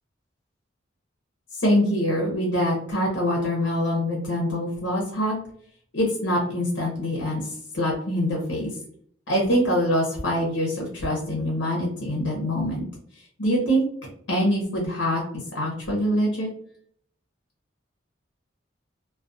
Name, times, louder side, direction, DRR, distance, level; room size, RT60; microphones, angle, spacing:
voice 1, 1.5-5.4 5.9-8.7 9.3-12.8 13.4-13.8 14.3-16.5, equal, 90° left, -2 dB, 0.7 m, -24 dB
2.3 x 2.2 x 2.5 m, 0.63 s
head